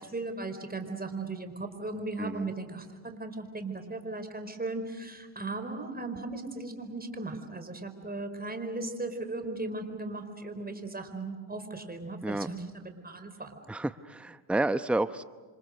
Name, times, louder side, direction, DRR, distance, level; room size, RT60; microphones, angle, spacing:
voice 1, 0.1-13.6, right 2 dB, 20° right, 7 dB, 4.8 m, -37 dB
voice 2, 2.2-2.5 12.2-12.5 13.7-15.2, right 2 dB, ahead, 12 dB, 0.9 m, -30 dB
28.5 x 26.0 x 6.7 m, 1.4 s
supercardioid pair, 65°, 49 cm